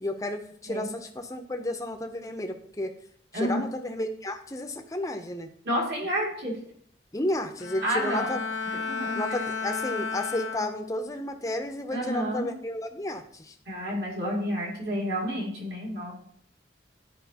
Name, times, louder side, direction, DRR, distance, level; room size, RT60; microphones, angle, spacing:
voice 1, 0.0-2.9 3.3-5.5 7.1-8.4 9.1-13.5, left 1 dB, 20° left, 6 dB, 0.6 m, -32 dB
voice 2, 3.3-3.6 5.6-6.6 7.8-8.4 8.7-9.2 11.9-12.5 13.7-16.3, equal, 65° right, -2 dB, 2.4 m, -30 dB
Bowed string instrument, 7.6-11.2 11.6-12.0, left 4 dB, 80° left, 0.7 m, -33 dB
11.5 x 4.8 x 2.8 m, 0.62 s
head